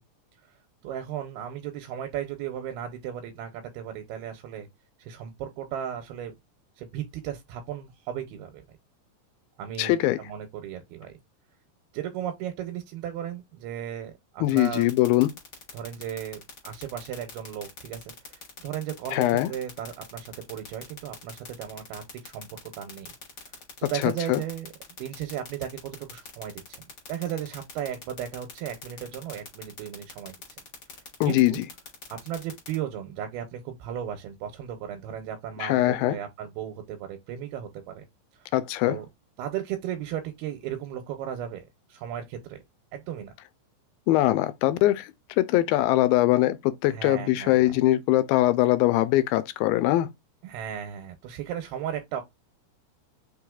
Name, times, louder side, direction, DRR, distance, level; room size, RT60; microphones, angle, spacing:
voice 1, 0.8-4.7 5.0-6.3 6.8-8.6 9.6-11.2 11.9-14.9 15.7-23.1 23.8-24.7 25.0-26.8 27.1-30.4 31.3-31.6 32.1-38.0 38.4-38.5 38.9-39.1 39.4-42.6 42.9-43.3 46.9-47.8 50.4-52.2, right 10 dB, 90° right, 2.7 m, -35 dB
voice 2, 9.8-10.2 14.4-15.3 19.1-19.5 24.0-24.4 31.2-31.6 35.6-36.2 38.5-39.0 44.1-45.1 45.4-50.1, left 16 dB, 85° left, 2.3 m, -22 dB
sound 1, 14.5-32.7, left 7 dB, 60° left, 1.0 m, -43 dB
5.7 x 3.1 x 2.3 m
omnidirectional pair, 4.2 m